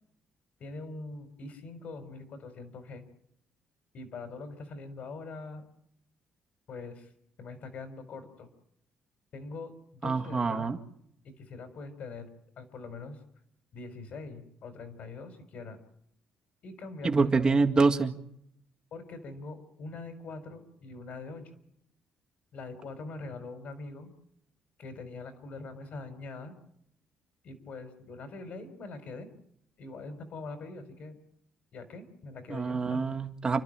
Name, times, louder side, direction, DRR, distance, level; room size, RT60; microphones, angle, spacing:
voice 1, 0.6-3.0 3.9-5.7 6.7-7.1 7.4-8.5 9.3-10.7 11.2-12.3 12.6-13.2 13.7-15.8 16.6-17.5 18.9-21.6 22.5-24.1 24.8-26.5 27.4-29.3 29.8-31.2 31.7-33.0, left 3 dB, 60° left, 9 dB, 4.2 m, -43 dB
voice 2, 10.0-10.8 17.0-18.1 32.5-33.6, right 4 dB, 30° right, 5 dB, 2.0 m, -26 dB
29.5 x 12.0 x 8.9 m, 0.75 s
cardioid pair, 125°, 3 cm